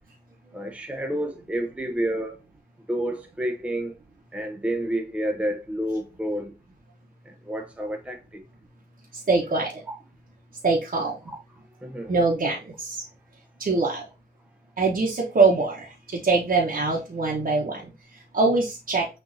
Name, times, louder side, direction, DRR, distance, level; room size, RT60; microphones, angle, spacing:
voice 1, 0.5-2.4 2.9-3.9 4.3-6.5 7.3-8.4 9.9-10.0 11.8-12.1, right 1 dB, 5° right, 0.7 m, -29 dB
voice 2, 9.1-9.8 10.6-11.2 12.1-13.0 13.6-14.0 14.8-19.1, right 3 dB, 55° right, 1.1 m, -23 dB
6.4 x 2.7 x 2.7 m
wide cardioid pair, 80°, 17 cm